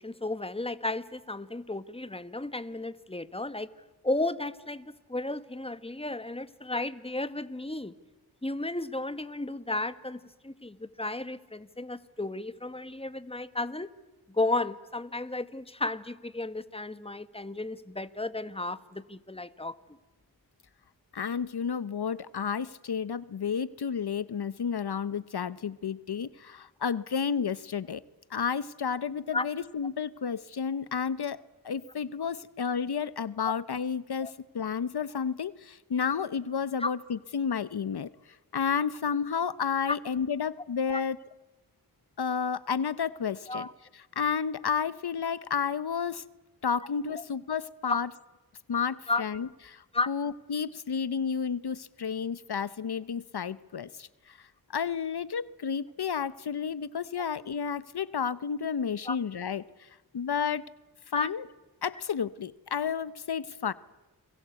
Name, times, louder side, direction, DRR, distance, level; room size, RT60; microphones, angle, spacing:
voice 1, 0.0-3.7 4.0-7.9 8.4-13.9 14.3-19.7 29.3-29.5 31.8-31.9 34.2-34.3 36.8-36.9 39.9-40.0 40.9-41.0 43.5-43.7 47.2-47.3 47.9-48.0 49.1-49.2 49.9-50.1 59.0-59.2 61.1-61.3, left 2 dB, 15° left, 13 dB, 1.5 m, -33 dB
voice 2, 21.1-28.0 28.3-38.1 38.5-41.2 42.2-43.7 44.2-46.2 46.6-48.1 48.7-59.9 60.1-60.7 61.1-61.5 61.8-63.7, left 6 dB, 75° left, 16 dB, 0.9 m, -31 dB
30.0 x 22.5 x 8.2 m, 1.1 s
wide cardioid pair, 55°, 39 cm